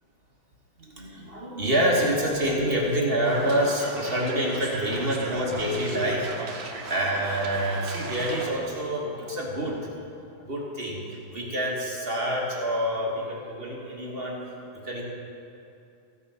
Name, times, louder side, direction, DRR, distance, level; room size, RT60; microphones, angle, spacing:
voice 1, 0.8-9.8 10.3-14.4 14.8-15.0, equal, 30° right, -3 dB, 1.5 m, -27 dB
sound 1, 3.2-8.5, right 4 dB, 75° right, 1.8 m, -37 dB
14.5 x 7.3 x 5.6 m, 2.6 s
omnidirectional pair, 2.1 m